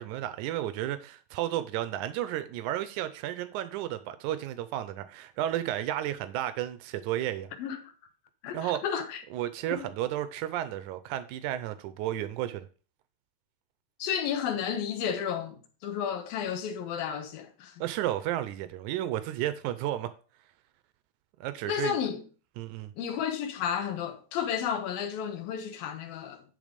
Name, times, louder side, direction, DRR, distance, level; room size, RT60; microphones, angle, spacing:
voice 1, 0.0-7.5 8.5-8.8 9.3-12.6 17.8-20.1 21.4-22.0 22.6-22.9, right 13 dB, 90° right, 1.7 m, -32 dB
voice 2, 7.6-7.9 8.4-9.2 9.7-9.9 14.0-17.7 21.7-22.2 23.0-26.4, left 8 dB, 75° left, 2.7 m, -32 dB
10.5 x 3.7 x 5.1 m
omnidirectional pair, 4.2 m